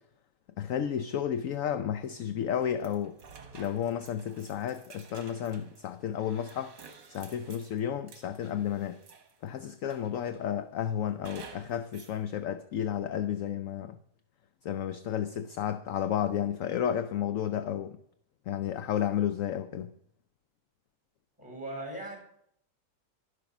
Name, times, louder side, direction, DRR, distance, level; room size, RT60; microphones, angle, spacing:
voice 1, 0.6-3.2 3.5-6.7 7.1-9.0 9.4-14.0 14.6-18.0 18.5-19.9, left 9 dB, 65° left, 0.9 m, -32 dB
sound 1, 2.8-9.5 9.9-10.5 11.2-12.2, right 5 dB, 80° right, 2.3 m, -52 dB
voice 2, 21.4-22.2, right 1 dB, 5° right, 6.7 m, -38 dB
12.0 x 11.5 x 6.0 m
omnidirectional pair, 1.9 m